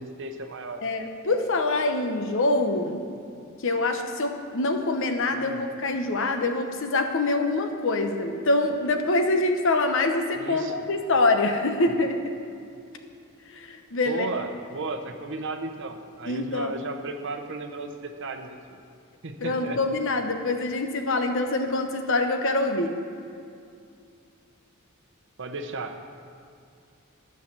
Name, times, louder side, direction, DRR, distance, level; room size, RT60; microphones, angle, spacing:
voice 1, 0.0-0.8 5.3-5.6 10.4-10.9 14.1-18.8 19.2-19.8 25.4-26.1, right 2 dB, 60° right, 6 dB, 0.8 m, -34 dB
voice 2, 0.8-3.0 3.6-12.3 13.5-14.3 16.3-16.7 19.4-22.9, left 2 dB, 65° left, 5 dB, 1.0 m, -25 dB
12.5 x 5.9 x 7.3 m, 2.5 s
head